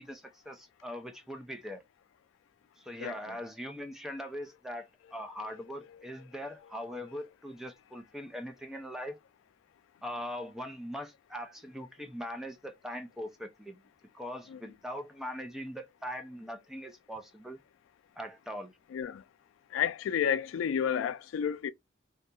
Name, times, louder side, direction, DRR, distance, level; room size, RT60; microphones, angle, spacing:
voice 1, 0.0-1.8 2.8-9.2 10.0-13.8 14.1-17.6 18.2-18.7, equal, ahead, 0.4 m, -41 dB
voice 2, 6.4-6.8 14.5-14.6 18.9-19.2 19.7-21.7, left 8 dB, 90° left, 0.3 m, -32 dB
2.4 x 2.2 x 2.7 m
head